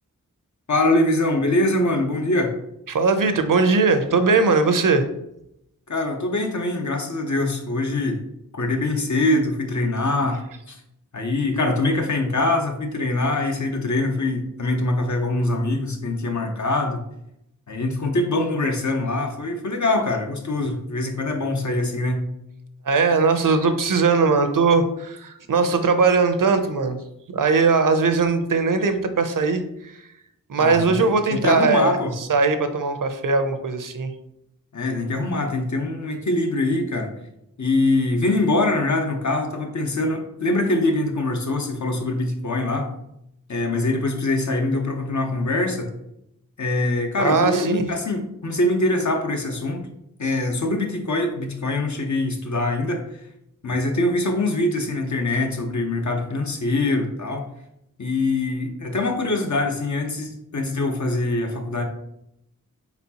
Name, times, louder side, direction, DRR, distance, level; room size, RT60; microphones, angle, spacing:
voice 1, 0.7-2.5 5.9-8.2 8.5-10.4 10.7-10.8 11.1-17.0 17.7-22.3 30.6-32.1 34.7-37.1 37.6-42.9 43.5-45.9 46.6-49.9 50.2-53.0 53.6-57.4 58.0-61.8, left 2 dB, 60° left, 3 dB, 0.8 m, -23 dB
voice 2, 2.9-5.0 22.9-27.0 27.3-29.9 30.5-34.1 47.2-47.9, right 4 dB, 70° right, 9 dB, 0.6 m, -20 dB
4.1 x 4.1 x 2.8 m, 0.79 s
wide cardioid pair, 50°, 33 cm